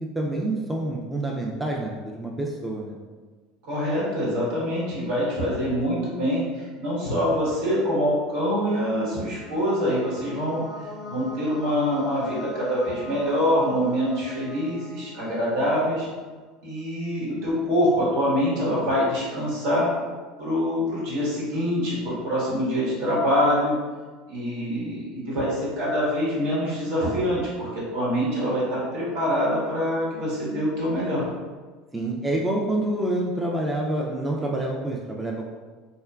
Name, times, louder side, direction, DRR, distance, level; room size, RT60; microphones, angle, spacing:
voice 1, 0.1-3.0 31.9-35.5, right 1 dB, 10° right, -1 dB, 0.3 m, -27 dB
voice 2, 3.6-10.6 11.1-16.1 16.6-19.9 20.4-23.8 24.3-31.2, equal, 75° right, -6 dB, 1.1 m, -25 dB
sound 1, 8.5-16.1, left 1 dB, 45° right, 0.9 m, -41 dB
2.9 x 2.1 x 2.3 m, 1.4 s
supercardioid pair, 105°, 0 cm